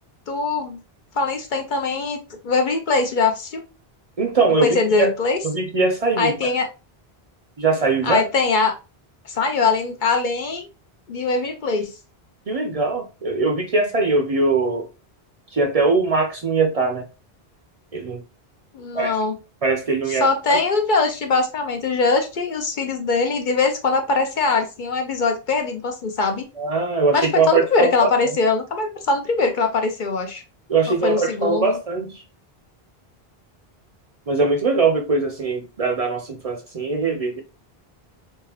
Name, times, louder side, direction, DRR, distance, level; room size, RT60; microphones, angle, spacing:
voice 1, 0.3-0.8 1.1-2.2 2.4-3.6 4.6-5.4 6.2-6.7 8.0-8.7 9.2-10.7 11.1-11.9 18.7-19.4 20.1-26.5 27.1-30.4 30.9-31.8, left 4 dB, 55° left, 0.7 m, -22 dB
voice 2, 4.2-5.1 5.4-6.5 7.6-8.2 12.5-14.9 15.5-17.1 17.9-18.2 18.9-19.2 19.6-20.6 26.6-28.1 30.7-32.2 34.3-37.4, right 3 dB, 45° right, 0.5 m, -21 dB
3.6 x 2.9 x 2.8 m
omnidirectional pair, 1.0 m